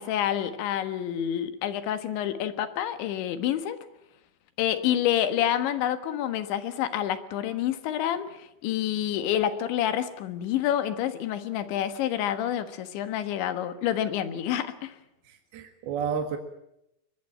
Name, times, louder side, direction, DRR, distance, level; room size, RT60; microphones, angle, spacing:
voice 1, 0.0-3.8 4.6-15.0, left 11 dB, 80° left, 11 dB, 3.8 m, -28 dB
voice 2, 15.2-16.4, right 6 dB, 65° right, 5 dB, 3.3 m, -31 dB
23.5 x 20.5 x 8.8 m, 0.82 s
omnidirectional pair, 5.2 m